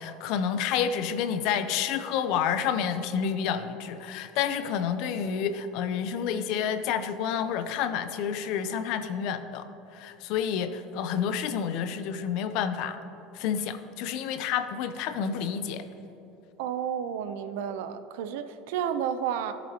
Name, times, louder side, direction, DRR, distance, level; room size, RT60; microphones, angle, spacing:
voice 1, 0.0-9.7 9.9-13.0 13.3-15.8, left 8 dB, 60° left, 10 dB, 0.6 m, -29 dB
voice 2, 16.6-19.5, right 8 dB, 85° right, 10 dB, 0.5 m, -31 dB
15.5 x 7.0 x 2.9 m, 3.0 s
cardioid pair, 155°, 0 cm